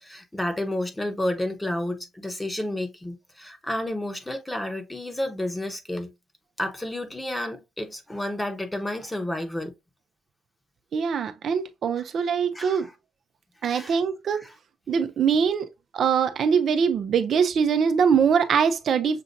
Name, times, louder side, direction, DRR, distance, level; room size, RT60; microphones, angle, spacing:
voice 1, 0.0-6.1 6.6-9.7 12.0-12.1 12.5-12.9 13.7-14.0 14.3-14.6, left 1 dB, 10° left, 1.1 m, -31 dB
voice 2, 10.9-12.9 13.6-14.4 14.9-15.7 15.9-19.2, right 6 dB, 60° right, 0.6 m, -22 dB
6.8 x 2.5 x 2.6 m
cardioid pair, 90°, 0 cm